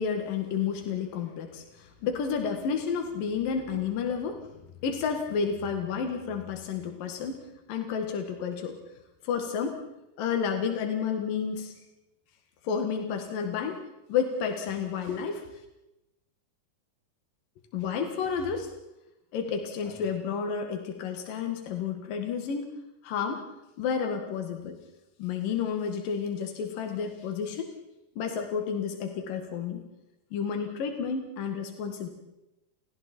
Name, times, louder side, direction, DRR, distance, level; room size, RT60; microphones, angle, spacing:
voice 1, 0.0-4.4 4.8-7.4 7.7-8.8 9.2-9.8 10.2-11.7 12.6-13.8 14.1-15.4 17.7-18.7 19.3-22.7 23.0-23.4 23.8-24.8 25.2-27.7 28.2-29.8 30.3-32.1, left 6 dB, 75° left, 4 dB, 3.5 m, -31 dB
30.0 x 29.5 x 4.5 m, 0.95 s
omnidirectional pair, 3.9 m